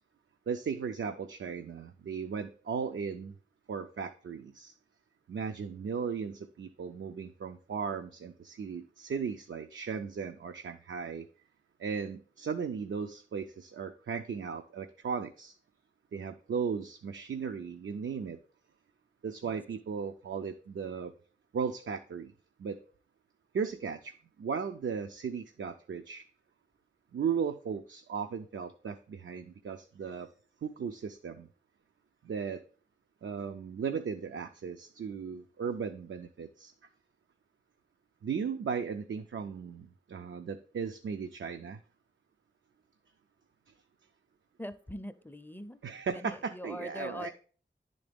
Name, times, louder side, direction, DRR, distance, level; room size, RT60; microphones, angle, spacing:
voice 1, 0.5-3.3 3.7-4.7 5.3-11.3 11.8-15.5 16.1-18.4 19.2-21.1 21.5-22.3 22.6-22.8 23.5-26.2 27.1-30.3 30.6-31.5 32.2-32.6 33.2-36.7 38.2-41.8 43.7-43.8 45.8-47.3, right 6 dB, 75° right, 7 dB, 0.4 m, -36 dB
voice 2, 44.6-45.8 46.1-47.3, left 1 dB, 10° left, 10 dB, 0.4 m, -42 dB
9.9 x 3.9 x 3.4 m, 0.41 s
wide cardioid pair, 65°, 20 cm